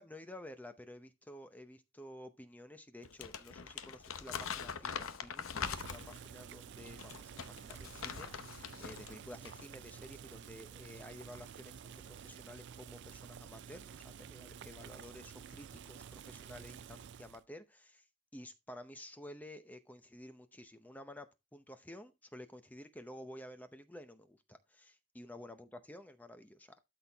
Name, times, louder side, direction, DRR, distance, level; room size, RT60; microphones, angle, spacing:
voice 1, 0.0-18.1 18.3-26.8, left 1 dB, 10° left, 0.7 m, -52 dB
Crumpling crinkling, 3.0-6.3 6.9-9.1 9.4-9.6, left 6 dB, 90° left, 0.8 m, -42 dB
Boiling, 5.7-17.4, right 7 dB, 55° right, 0.4 m, -51 dB
12.5 x 4.4 x 3.4 m
head